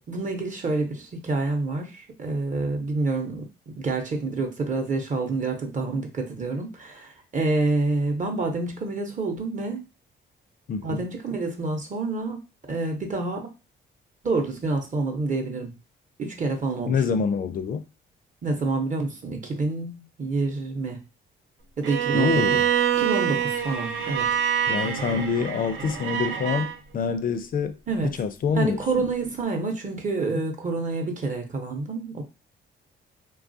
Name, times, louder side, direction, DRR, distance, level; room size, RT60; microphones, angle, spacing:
voice 1, 0.1-3.5 3.8-9.8 10.8-12.4 12.7-13.5 14.2-15.7 16.2-17.2 18.4-21.0 21.8-22.4 23.0-24.3 27.9-28.1 28.5-32.2, right 3 dB, 40° right, 0.8 m, -28 dB
voice 2, 10.7-11.1 16.9-17.8 22.1-22.6 24.7-27.8 28.2-28.8, left 5 dB, 45° left, 0.4 m, -26 dB
Bowed string instrument, 21.8-26.7, right 9 dB, 85° right, 0.7 m, -25 dB
3.0 x 2.3 x 2.6 m
cardioid pair, 90°, 20 cm